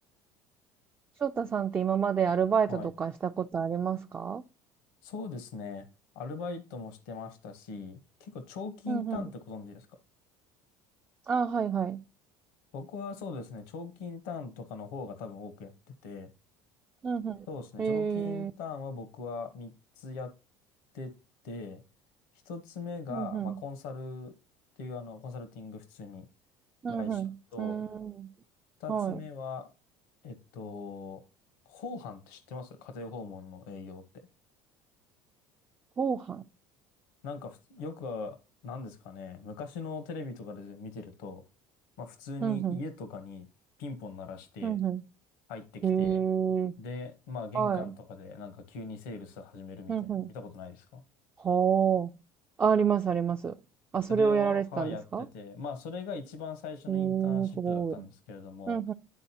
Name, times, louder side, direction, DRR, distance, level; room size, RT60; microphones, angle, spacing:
voice 1, 1.2-4.4 8.9-9.2 11.3-12.0 17.0-17.5 17.8-18.5 23.1-23.6 26.8-28.3 28.9-29.2 36.0-36.4 42.4-42.8 44.6-45.0 45.8-46.8 47.5-47.9 49.9-50.3 51.4-52.2 52.6-53.6 53.9-55.3 56.9-58.1 58.7-58.9, right 7 dB, 20° right, 0.3 m, -29 dB
voice 2, 5.0-5.9 6.1-10.0 12.7-16.3 17.5-20.3 20.9-21.1 21.4-21.8 22.5-24.3 24.8-26.3 26.9-27.2 27.5-27.8 28.8-29.7 30.2-31.2 31.7-34.3 37.2-38.4 38.6-41.4 42.0-43.5 43.8-44.7 45.5-46.2 46.8-51.0 54.1-58.8, left 4 dB, 80° left, 1.0 m, -40 dB
11.0 x 3.8 x 2.8 m
supercardioid pair, 100°, 9 cm